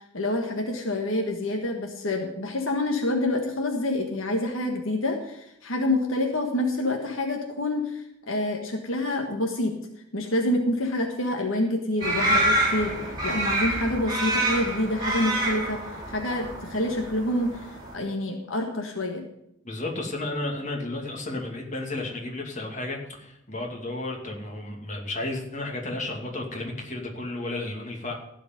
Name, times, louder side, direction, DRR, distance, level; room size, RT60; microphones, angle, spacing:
voice 1, 0.1-9.7 10.1-13.0 13.2-15.8 16.1-17.7 17.9-19.3, left 1 dB, 70° left, 2 dB, 1.6 m, -27 dB
sound 1, 12.0-17.9, right 1 dB, 20° right, 3.7 m, -27 dB
voice 2, 19.6-28.1, left 2 dB, 35° left, 1 dB, 2.6 m, -33 dB
15.5 x 5.2 x 9.5 m, 0.80 s
head